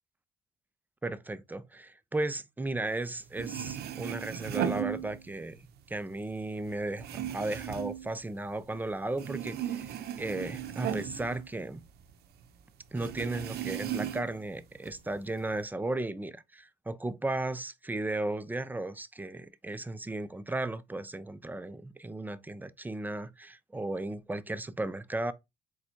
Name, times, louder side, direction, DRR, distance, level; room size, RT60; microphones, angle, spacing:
voice 1, 1.0-11.8 12.9-25.3, right 2 dB, 10° right, 0.5 m, -35 dB
sound 1, 3.1-3.2 3.3-5.6 5.9-8.8 9.1-12.1 12.4-12.5 13.0-14.4 14.8-15.6, right 10 dB, 65° right, 0.7 m, -36 dB
4.2 x 2.2 x 4.4 m
supercardioid pair, 80°, 17 cm